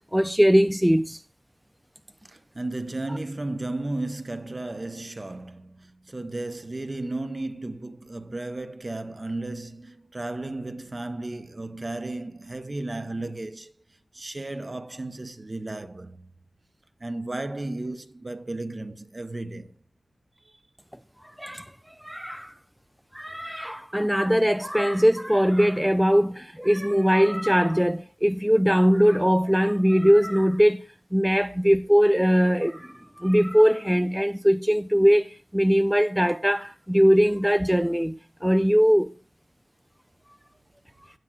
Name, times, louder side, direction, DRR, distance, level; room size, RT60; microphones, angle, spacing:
voice 1, 0.1-1.2 21.4-21.7 22.0-22.5 23.1-30.8 31.1-39.1, equal, 5° right, 0.3 m, -21 dB
voice 2, 2.3-13.7 14.1-16.3 17.0-19.7 20.4-20.6, right 2 dB, 35° right, 0.8 m, -34 dB
17.0 x 7.3 x 2.3 m
wide cardioid pair, 65°, 0 cm